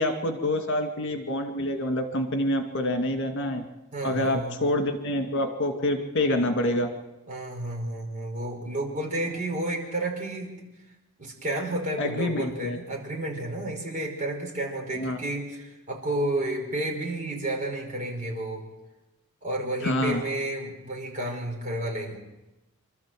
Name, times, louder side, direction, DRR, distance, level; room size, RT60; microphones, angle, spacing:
voice 1, 0.0-3.6 4.0-6.9 12.0-12.8 14.9-15.2 19.8-20.2, left 1 dB, 60° left, 5 dB, 2.3 m, -27 dB
voice 2, 3.9-4.6 7.3-10.6 11.2-18.6 19.4-22.2, right 1 dB, 40° right, 0 dB, 5.2 m, -31 dB
26.0 x 13.0 x 7.7 m, 1.0 s
head